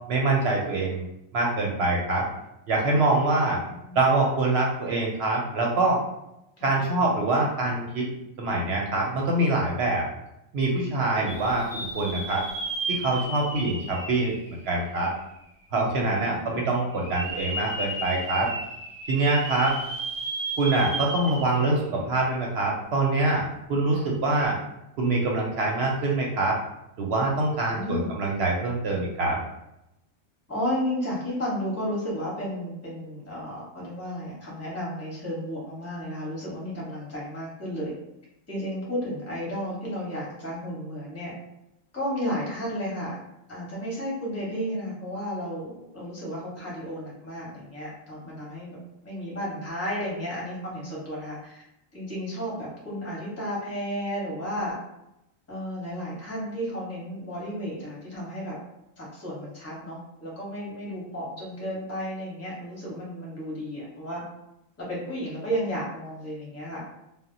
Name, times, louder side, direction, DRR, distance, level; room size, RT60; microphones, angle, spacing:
voice 1, 0.1-1.0 1.3-2.3 2.7-3.6 4.0-6.0 6.6-8.1 8.4-10.1 10.5-12.4 12.9-15.1 15.7-18.5 19.1-19.8 20.6-23.4 23.7-24.6 25.0-26.6 27.0-29.4, right 2 dB, 65° right, -1 dB, 0.7 m, -24 dB
voice 2, 3.5-4.0 6.6-6.7 16.2-16.6 23.9-24.2 27.7-28.1 30.5-37.9 38.5-41.3 41.9-43.2 43.5-48.8 49.0-51.5 51.9-54.7 55.5-58.5 59.0-64.2 64.8-66.8, equal, 15° left, -5 dB, 0.7 m, -33 dB
sound 1, 11.3-15.2 15.7-15.8 16.9-21.9 22.2-22.3 24.3-24.5, right 2 dB, 25° right, 0.4 m, -34 dB
2.1 x 2.0 x 3.7 m, 0.85 s
omnidirectional pair, 1.3 m